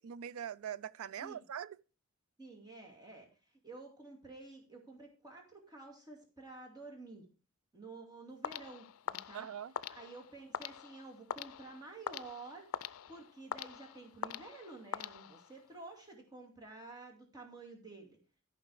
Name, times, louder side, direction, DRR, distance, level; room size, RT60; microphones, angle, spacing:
voice 1, 0.0-1.8 9.3-9.7, right 9 dB, 85° right, 0.4 m, -42 dB
voice 2, 2.4-3.3 3.6-7.2 7.7-9.5 9.9-18.2, right 3 dB, 20° right, 2.4 m, -51 dB
sound 1, 8.4-15.7, left 8 dB, 80° left, 0.5 m, -44 dB
13.0 x 5.7 x 4.7 m
head